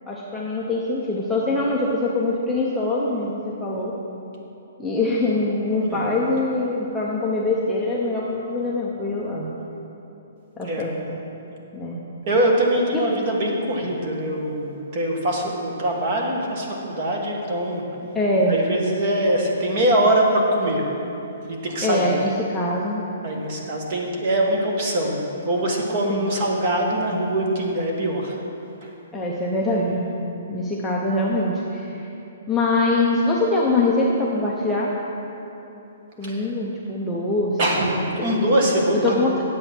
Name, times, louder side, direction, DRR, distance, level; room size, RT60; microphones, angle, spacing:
voice 1, 0.1-3.9 4.8-9.5 10.6-11.2 11.7-12.0 12.9-13.1 18.1-18.6 21.8-23.0 26.1-26.2 29.1-30.1 30.5-32.1 32.5-34.9 36.2-38.5 39.0-39.4, left 2 dB, ahead, -7 dB, 0.6 m, -23 dB
voice 2, 12.3-17.8 18.5-20.9 21.5-22.2 23.2-28.4 28.8-28.9 36.2-36.5 37.6-39.2, right 1 dB, 30° right, 0 dB, 1.3 m, -23 dB
10.0 x 7.8 x 5.9 m, 2.9 s
hypercardioid pair, 180°, 0 cm